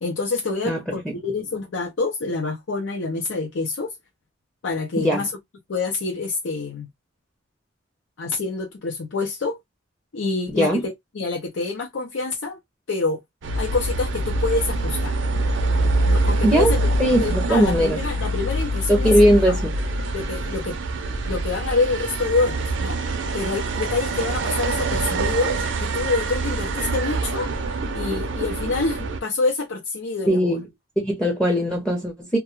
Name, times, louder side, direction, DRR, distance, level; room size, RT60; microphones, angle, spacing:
voice 1, 0.0-4.0 4.6-5.3 5.7-6.9 8.2-9.6 10.1-12.6 12.9-13.2 13.6-15.2 16.0-16.8 17.2-19.1 19.5-19.6 20.1-20.8 21.3-23.0 23.3-27.5 27.9-30.6, left 3 dB, 80° left, 0.6 m, -26 dB
voice 2, 5.0-5.3 10.5-10.8 16.4-16.7 17.0-18.0 18.9-19.8 30.3-30.7 31.0-32.4, equal, 5° left, 0.6 m, -19 dB
sound 1, 13.4-29.2, right 2 dB, 65° right, 0.5 m, -25 dB
2.3 x 2.2 x 2.9 m
head